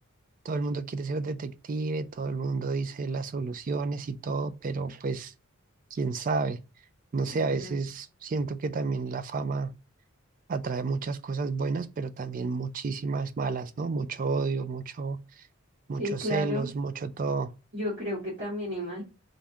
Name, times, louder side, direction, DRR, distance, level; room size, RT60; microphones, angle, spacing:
voice 1, 0.4-5.3 5.9-6.6 7.1-9.7 10.5-15.5 15.9-17.5, right 4 dB, 40° right, 0.3 m, -31 dB
voice 2, 7.2-7.8 16.0-16.6 17.7-19.0, equal, 55° right, 1.7 m, -33 dB
3.6 x 2.6 x 3.3 m
head